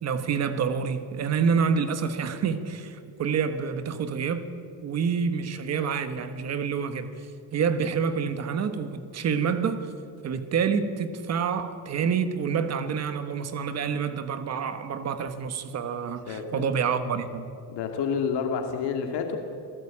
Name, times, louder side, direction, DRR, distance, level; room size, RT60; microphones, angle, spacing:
voice 1, 0.0-4.5 4.8-7.3 7.5-9.9 10.2-17.5, right 6 dB, 35° right, 10 dB, 1.5 m, -27 dB
voice 2, 16.3-16.7 17.7-19.4, left 6 dB, 60° left, 4 dB, 2.5 m, -29 dB
27.5 x 17.5 x 8.8 m, 2.5 s
cardioid pair, 175°, 45 cm